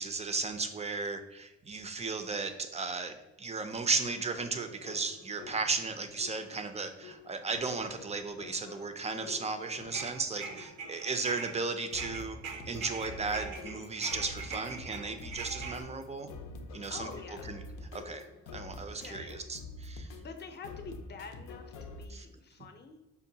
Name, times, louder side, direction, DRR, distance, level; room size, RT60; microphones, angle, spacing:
voice 1, 0.0-16.3 16.7-17.1 17.5-17.6 17.9-18.3 18.5-20.1 22.1-22.3, right 4 dB, 20° right, 8 dB, 0.4 m, -35 dB
sound 1, 3.7-22.1, left 3 dB, 85° left, 0.5 m, -48 dB
sound 2, 9.6-11.6 11.9-15.8, right 5 dB, 80° right, 0.5 m, -42 dB
voice 2, 10.4-10.7 16.9-17.5 18.9-19.4 20.2-23.0, left 4 dB, 35° left, 6 dB, 0.6 m, -47 dB
5.2 x 2.2 x 2.7 m, 1.0 s
cardioid pair, 90°, 30 cm